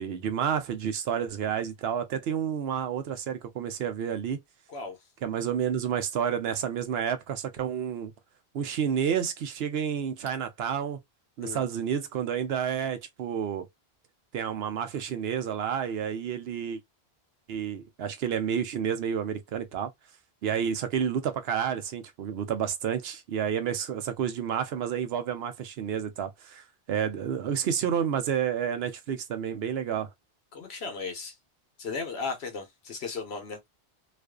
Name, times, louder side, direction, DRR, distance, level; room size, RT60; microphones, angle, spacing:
voice 1, 0.0-4.4 5.2-8.1 8.5-11.0 11.4-13.7 14.3-16.8 17.5-19.9 20.4-30.1, right 8 dB, 70° right, 0.8 m, -30 dB
voice 2, 30.5-31.3 31.8-33.6, left 4 dB, 75° left, 1.1 m, -35 dB
2.5 x 2.4 x 2.2 m
omnidirectional pair, 1.1 m